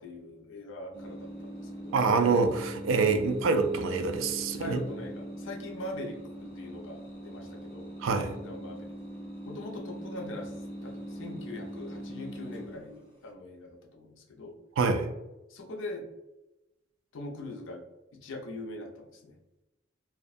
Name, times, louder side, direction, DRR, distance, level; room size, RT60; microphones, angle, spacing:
voice 1, 0.0-2.0 4.6-7.9 8.3-8.9 9.5-10.5 10.8-12.9 13.2-14.6 15.5-16.1 17.1-17.8 18.2-19.4, left 2 dB, 75° left, 1 dB, 0.5 m, -42 dB
sound 1, 0.9-13.3, equal, 10° left, 0.9 m, -41 dB
voice 2, 1.9-4.8 8.0-8.3 14.8-15.1, right 4 dB, 80° right, 7 dB, 0.3 m, -26 dB
2.3 x 2.0 x 2.5 m, 0.98 s
head